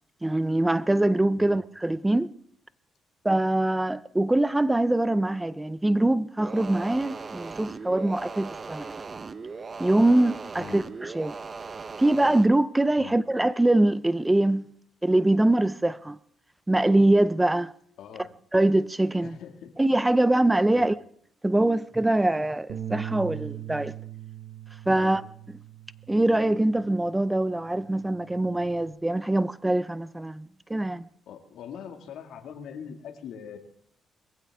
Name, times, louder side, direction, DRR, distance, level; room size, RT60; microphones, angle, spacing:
voice 1, 0.2-2.3 3.2-8.9 9.8-11.4 12.0-14.7 15.0-16.2 16.7-17.7 18.5-19.4 19.8-21.0 21.4-24.0 24.9-25.2 26.1-31.1, right 1 dB, 10° right, 0.5 m, -23 dB
sound 1, 6.4-12.5, right 4 dB, 35° right, 0.9 m, -39 dB
voice 2, 18.0-18.3 19.2-19.7 20.7-20.9 24.9-25.2 31.3-33.6, left 8 dB, 80° left, 2.1 m, -42 dB
Bass guitar, 22.7-27.2 27.6-28.9, right 11 dB, 80° right, 1.1 m, -40 dB
21.5 x 15.5 x 3.6 m
cardioid pair, 90°, 0 cm